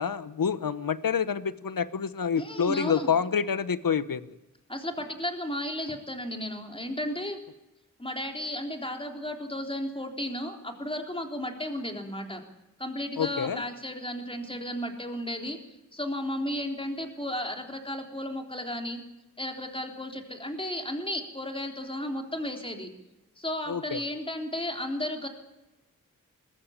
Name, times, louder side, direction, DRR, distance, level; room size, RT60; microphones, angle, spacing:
voice 1, 0.0-4.4 13.2-13.6 23.7-24.0, left 7 dB, 80° left, 15 dB, 1.0 m, -28 dB
voice 2, 2.4-3.1 4.7-7.4 8.0-12.4 12.8-15.6 15.9-19.0 19.4-22.9 23.4-25.3, left 1 dB, 15° left, 4 dB, 3.6 m, -34 dB
21.0 x 14.5 x 8.7 m, 0.99 s
wide cardioid pair, 75°, 34 cm